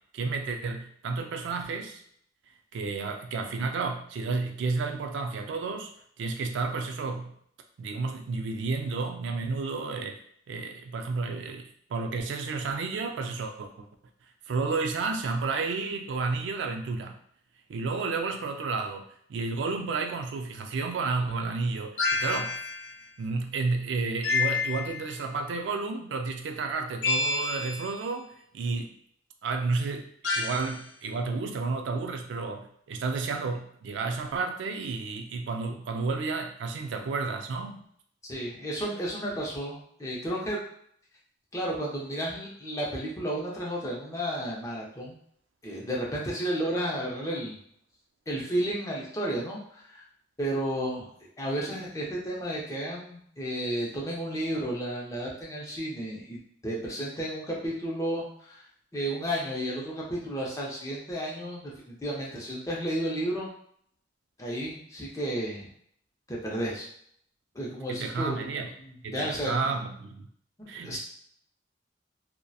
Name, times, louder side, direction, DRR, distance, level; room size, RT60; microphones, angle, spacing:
voice 1, 0.1-2.0 2.7-5.9 6.2-7.3 7.8-13.9 14.5-17.2 17.7-22.6 23.2-28.9 29.4-30.1 30.4-37.8 67.9-68.7 69.0-70.3 70.7-71.0, right 4 dB, 80° right, 4 dB, 0.3 m, -31 dB
sound 1, 22.0-22.9 24.2-25.2 27.0-27.9 30.2-30.8, left 4 dB, 85° left, 0.7 m, -29 dB
voice 2, 38.2-40.6 41.5-45.2 45.6-47.6 48.3-50.0 50.4-51.1 51.4-56.4 56.6-58.6 58.9-63.5 64.4-65.7 66.3-66.9 67.5-69.7 70.8-71.0, right 1 dB, 20° left, -4 dB, 0.5 m, -32 dB
2.7 x 2.1 x 2.3 m, 0.66 s
head